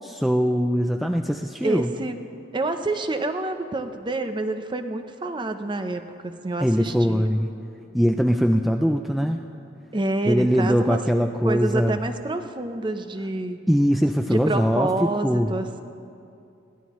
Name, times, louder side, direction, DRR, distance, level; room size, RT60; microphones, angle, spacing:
voice 1, 0.1-1.9 6.6-7.5 7.9-9.4 10.3-12.0 13.7-15.5, equal, ahead, 3 dB, 0.4 m, -21 dB
voice 2, 1.6-2.2 2.5-7.2 9.9-11.0 11.4-13.6 14.3-15.8, right 2 dB, 25° right, 8 dB, 0.7 m, -27 dB
22.5 x 16.0 x 3.1 m, 2.6 s
head